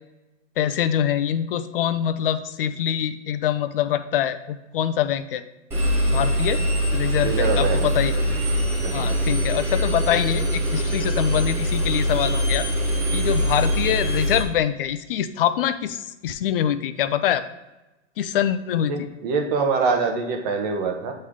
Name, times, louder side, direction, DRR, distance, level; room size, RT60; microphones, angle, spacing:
voice 1, 0.6-5.4 6.1-6.6 6.9-8.2 8.9-12.7 13.1-17.4 18.2-18.9, left 10 dB, 50° left, 11 dB, 0.5 m, -24 dB
Engine, 5.7-14.4, equal, 5° right, 0.6 m, -23 dB
voice 2, 7.2-7.9 8.8-9.2 18.9-21.1, right 4 dB, 30° right, 3 dB, 0.9 m, -24 dB
8.2 x 3.3 x 3.6 m, 1.0 s
hypercardioid pair, 150°, 36 cm